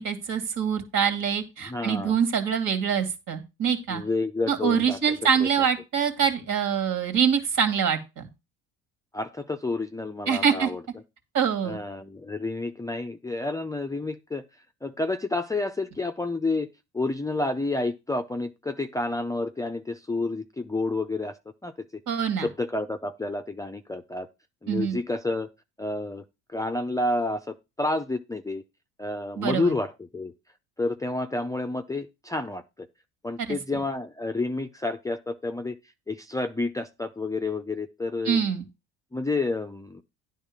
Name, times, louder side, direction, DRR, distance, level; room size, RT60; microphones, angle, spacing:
voice 1, 0.0-4.0 4.5-8.3 10.3-10.7 11.3-11.8 22.1-22.5 24.7-25.0 29.4-29.7 33.4-33.5 38.2-38.6, right 7 dB, 55° right, 2.7 m, -25 dB
voice 2, 1.7-2.1 3.9-5.0 5.4-5.5 9.1-10.8 11.6-14.4 14.8-16.7 16.9-21.4 21.6-22.0 22.4-24.3 24.6-25.5 25.8-26.2 26.5-28.6 29.0-30.3 30.8-32.9 33.2-35.8 36.1-38.4 39.1-40.0, left 2 dB, 10° left, 0.6 m, -29 dB
9.9 x 3.7 x 7.2 m
supercardioid pair, 90°, 37 cm